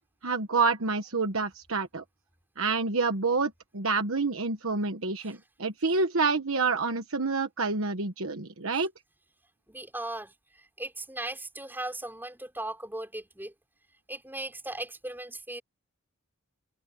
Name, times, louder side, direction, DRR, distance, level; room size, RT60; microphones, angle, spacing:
voice 1, 0.2-2.0 2.6-8.9, right 4 dB, 70° right, 1.3 m, -28 dB
voice 2, 9.7-13.5 14.1-15.6, right 1 dB, 10° right, 6.4 m, -38 dB
head